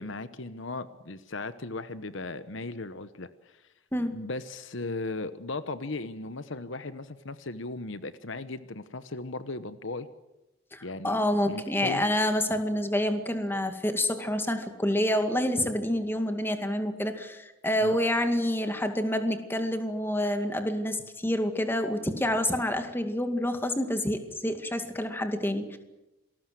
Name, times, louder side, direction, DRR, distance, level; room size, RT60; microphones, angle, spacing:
voice 1, 0.0-3.6 4.1-10.1 10.8-11.2 11.5-12.0 17.8-18.0, left 3 dB, 65° left, 12 dB, 1.1 m, -37 dB
voice 2, 10.7-25.8, left 1 dB, 10° left, 7 dB, 2.1 m, -28 dB
27.5 x 20.0 x 7.7 m, 0.98 s
head